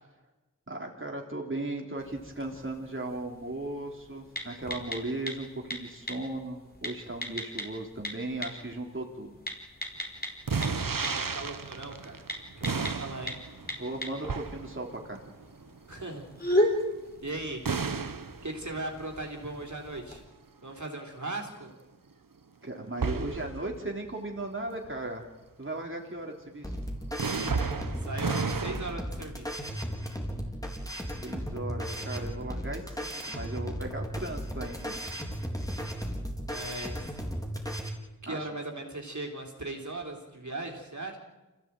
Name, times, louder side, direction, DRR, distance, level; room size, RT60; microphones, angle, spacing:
voice 1, 0.7-9.4 13.8-15.2 22.6-25.2 25.6-26.7 31.2-35.0 38.3-38.5, right 2 dB, 40° right, 0 dB, 3.4 m, -37 dB
sound 1, 2.0-20.2, left 1 dB, 30° left, 4.9 m, -37 dB
sound 2, 10.5-16.3 17.6-19.2 23.0-24.1 24.8-25.0 27.2-28.9, right 5 dB, 80° right, 1.1 m, -33 dB
voice 2, 10.6-12.2 12.6-13.4 15.9-16.3 16.6-16.8 17.2-17.7 18.4-20.2 20.6-21.7 27.9-29.6 36.5-37.2 38.2-41.2, right 2 dB, 60° right, 1 dB, 3.8 m, -38 dB
sound 3, 26.6-37.9, equal, 10° left, 4.2 m, -35 dB
27.0 x 16.0 x 9.0 m, 1.1 s
wide cardioid pair, 45°, 33 cm